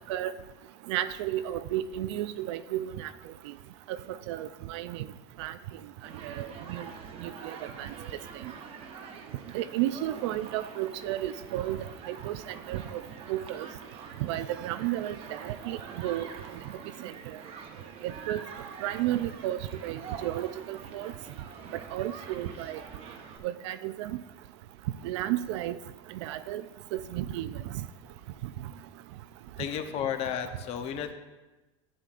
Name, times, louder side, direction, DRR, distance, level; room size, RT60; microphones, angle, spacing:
voice 1, 0.9-3.1 3.9-5.1 5.4-5.5 6.2-6.9 7.2-7.9 8.4-8.5 9.5-11.8 12.1-13.0 13.3-13.7 14.2-16.3 17.0-17.1 18.0-18.4 18.8-21.1 21.9-22.8 23.4-24.2 25.0-25.8 26.2-26.6 26.9-27.8, right 13 dB, 80° right, 12 dB, 0.4 m, -33 dB
Human group actions, 6.0-23.4, right 6 dB, 40° right, 0.9 m, -45 dB
voice 2, 29.6-31.1, left 9 dB, 45° left, 8 dB, 0.7 m, -32 dB
11.0 x 8.5 x 2.5 m, 1.1 s
supercardioid pair, 135°, 14 cm